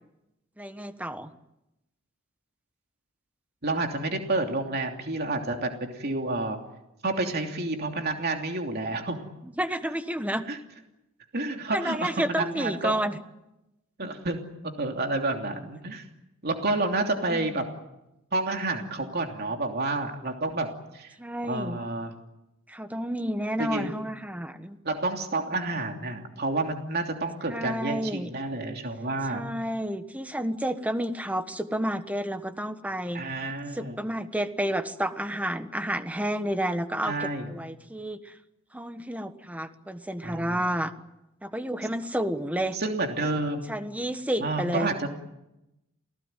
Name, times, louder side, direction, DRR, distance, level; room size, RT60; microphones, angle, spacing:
voice 1, 0.6-1.3 9.4-10.5 11.7-13.2 17.3-17.6 21.2-21.8 22.7-24.8 27.5-28.3 29.3-33.2 33.7-38.3 38.7-40.9 41.4-42.8 43.7-44.9, right 1 dB, 5° right, 9 dB, 1.4 m, -30 dB
voice 2, 3.6-6.6 7.0-9.2 10.5-10.6 11.3-12.9 14.0-14.4 14.6-16.1 16.4-17.6 18.3-20.7 20.9-21.1 21.5-22.1 23.6-23.9 24.8-29.4 33.1-34.0 37.0-37.5 40.2-40.6 42.7-43.7 44.4-45.1, right 2 dB, 50° right, 3 dB, 3.0 m, -29 dB
29.0 x 18.0 x 9.2 m, 0.93 s
head